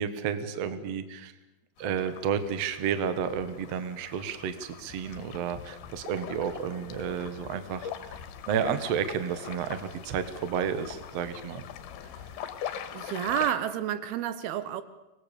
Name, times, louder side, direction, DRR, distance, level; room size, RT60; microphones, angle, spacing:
voice 1, 0.0-1.3 1.8-8.2 8.5-11.6, right 7 dB, 55° right, 11 dB, 1.9 m, -31 dB
sound 1, 1.8-13.5, left 9 dB, 75° left, 3.1 m, -42 dB
voice 2, 12.9-14.8, right 11 dB, 80° right, 13 dB, 2.8 m, -30 dB
25.0 x 20.5 x 7.0 m, 1.0 s
omnidirectional pair, 4.6 m